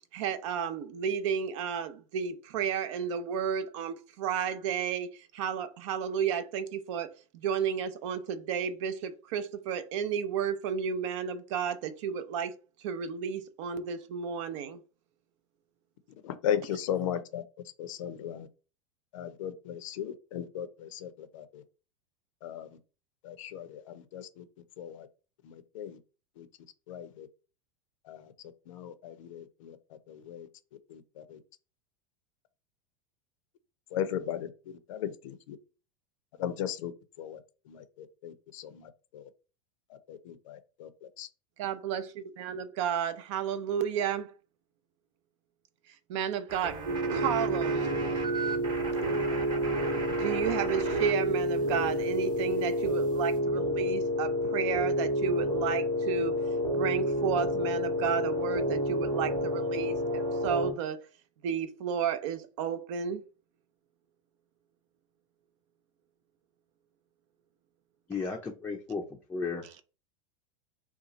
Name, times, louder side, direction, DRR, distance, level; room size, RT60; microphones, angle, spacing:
voice 1, 0.1-12.5 12.8-14.8 41.6-44.3 46.1-46.8 47.1-47.9 50.2-56.4 56.7-61.0 61.4-63.2, right 7 dB, 60° right, 0.5 m, -32 dB
voice 2, 16.2-17.4 17.8-18.5 19.1-21.6 22.4-22.7 23.2-24.4 24.8-25.1 25.4-26.0 26.4-26.5 26.9-27.3 28.0-28.3 28.7-30.5 30.9-31.4 33.9-35.6 36.3-36.9 37.2-37.4 37.7-39.3 39.9-40.9 41.2-41.3, left 9 dB, 70° left, 0.5 m, -37 dB
sound 1, 46.5-51.1 51.4-53.4, right 3 dB, 25° right, 0.9 m, -39 dB
sound 2, 46.9-60.7, equal, 90° right, 1.1 m, -29 dB
voice 3, 68.1-69.0 69.3-69.8, left 4 dB, 10° left, 0.4 m, -34 dB
2.8 x 2.3 x 3.9 m
hypercardioid pair, 95°, 17 cm